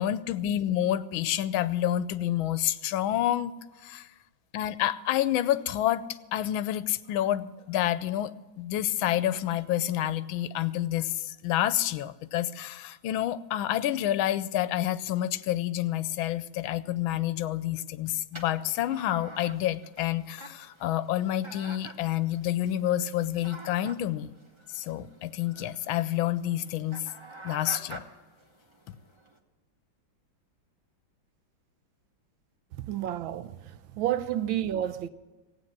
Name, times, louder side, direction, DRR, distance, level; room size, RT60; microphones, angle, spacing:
voice 1, 0.0-3.5 3.8-4.1 4.5-24.3 24.7-27.1 27.4-28.0, left 12 dB, 85° left, 1.4 m, -28 dB
sound 1, 18.3-29.4, right 1 dB, 20° right, 0.9 m, -48 dB
voice 2, 32.8-33.6 34.0-35.1, right 11 dB, 80° right, 1.4 m, -30 dB
16.0 x 9.0 x 7.4 m
omnidirectional pair, 2.2 m